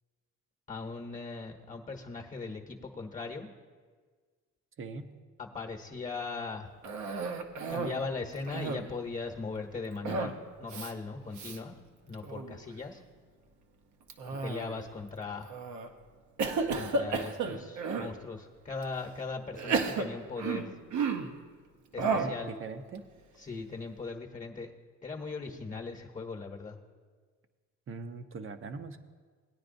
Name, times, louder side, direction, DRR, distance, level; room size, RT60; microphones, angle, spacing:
voice 1, 0.7-3.5 5.4-6.7 7.7-11.7 12.1-13.0 14.4-15.5 16.7-20.7 21.9-22.5 23.4-24.7 25.0-26.8, left 4 dB, 25° left, 2 dB, 1.0 m, -39 dB
voice 2, 4.8-5.1 22.0-23.0 27.9-29.0, right 4 dB, 45° right, 9 dB, 0.8 m, -41 dB
Cough, 6.8-8.0 8.4-9.0 10.0-10.4 10.7-10.9 11.3-11.6 12.1-12.6 14.1-14.9 15.5-15.9 16.4-18.1 18.8-18.9 19.5-21.4 22.0-22.4, right 4 dB, 70° right, 0.9 m, -33 dB
18.0 x 9.5 x 2.6 m, 1.5 s
cardioid pair, 90°, 30 cm